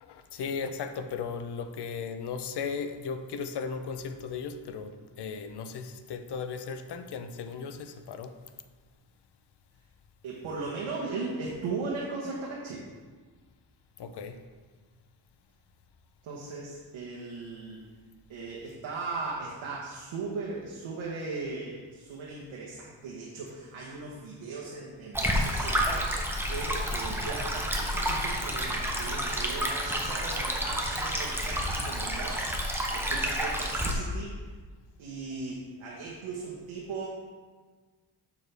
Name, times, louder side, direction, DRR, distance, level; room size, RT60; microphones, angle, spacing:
voice 1, 0.0-8.4 14.0-14.4, left 5 dB, 60° left, 8 dB, 0.7 m, -36 dB
voice 2, 10.2-12.9 16.2-17.8 18.3-34.3 35.0-37.1, right 3 dB, 80° right, -4 dB, 1.2 m, -38 dB
Stream, 25.1-33.9, equal, 5° right, 0.7 m, -30 dB
7.0 x 6.2 x 3.4 m, 1.4 s
wide cardioid pair, 130°, 47 cm